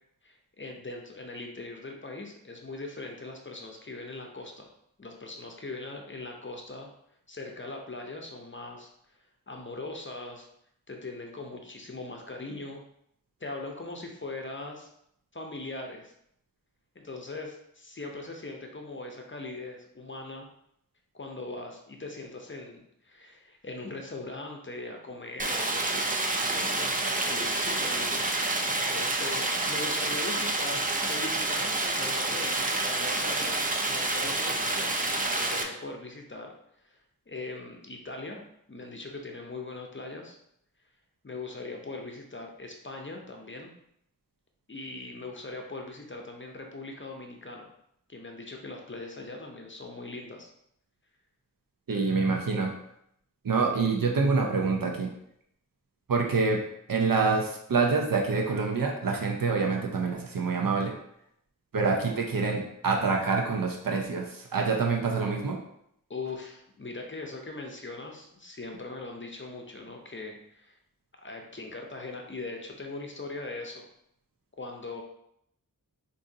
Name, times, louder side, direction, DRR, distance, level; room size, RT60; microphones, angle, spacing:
voice 1, 0.2-4.7 5.0-6.9 7.3-8.9 9.5-10.5 10.9-12.9 13.4-14.9 15.3-16.1 17.0-20.5 21.1-26.0 26.3-28.2 28.9-33.6 33.9-36.5 36.8-37.0 37.3-40.4 41.2-43.7 44.7-47.7 48.1-50.5 66.1-70.8 71.2-73.8 74.6-75.0, left 2 dB, 35° left, 2 dB, 0.6 m, -40 dB
Stream, 25.4-35.6, right 2 dB, 25° right, 0.5 m, -28 dB
voice 2, 51.9-52.7 53.4-55.1 56.1-56.6 56.9-60.9 61.7-65.6, right 4 dB, 75° right, 1 dB, 0.6 m, -26 dB
4.8 x 2.7 x 2.7 m, 0.74 s
wide cardioid pair, 55°, 34 cm